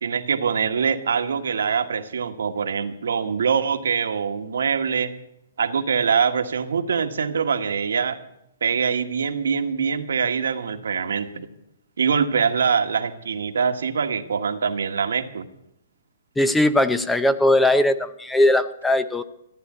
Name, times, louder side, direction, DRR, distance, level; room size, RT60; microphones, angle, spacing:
voice 1, 0.0-5.1 5.6-8.2 8.6-11.5 12.0-15.4, right 6 dB, 80° right, 6 dB, 1.4 m, -24 dB
voice 2, 16.4-19.2, left 1 dB, 5° left, 12 dB, 0.6 m, -19 dB
15.0 x 9.7 x 9.4 m, 0.84 s
hypercardioid pair, 150°, 0 cm